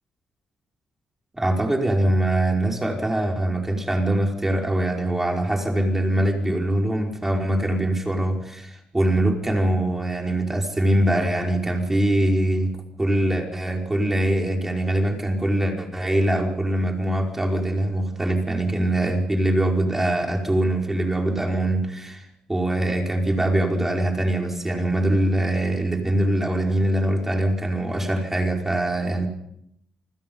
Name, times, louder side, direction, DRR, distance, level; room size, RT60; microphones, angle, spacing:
voice 1, 1.3-12.7 13.0-29.3, right 1 dB, 15° right, 1 dB, 5.1 m, -23 dB
29.0 x 20.0 x 5.5 m, 0.76 s
cardioid pair, 105°, 2 cm